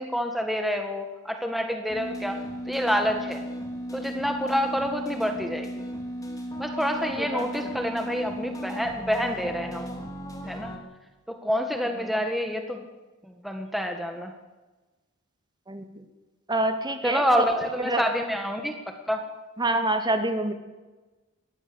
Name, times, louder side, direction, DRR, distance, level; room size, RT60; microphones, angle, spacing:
voice 1, 0.0-2.4 2.7-3.4 3.9-5.8 6.6-9.9 10.4-10.7 11.3-12.8 13.2-14.3 17.0-18.8 19.1-19.2, equal, ahead, 4 dB, 1.7 m, -27 dB
sound 1, 1.9-10.8, equal, 15° left, 3.2 m, -36 dB
voice 2, 7.2-7.7 15.7-15.8 16.5-17.2 17.8-18.0 19.6-20.5, right 1 dB, 20° right, 7 dB, 1.9 m, -26 dB
21.5 x 15.0 x 8.0 m, 1.2 s
head